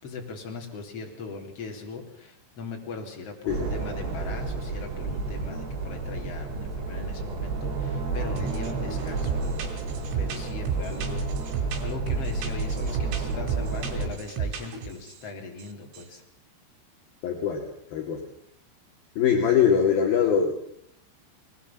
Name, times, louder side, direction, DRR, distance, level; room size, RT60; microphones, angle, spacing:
voice 1, 0.0-9.8 10.1-16.2, left 4 dB, 35° left, 2 dB, 4.0 m, -39 dB
sound 1, 3.5-14.1, right 3 dB, 60° right, 5.9 m, -31 dB
sound 2, 8.4-8.7 9.0-15.2 15.6-16.1, right 7 dB, 80° right, 5.3 m, -33 dB
voice 2, 17.2-17.7 17.9-18.2 19.2-20.5, left 7 dB, 55° left, 2 dB, 3.5 m, -22 dB
21.5 x 21.0 x 7.3 m, 0.68 s
omnidirectional pair, 5.6 m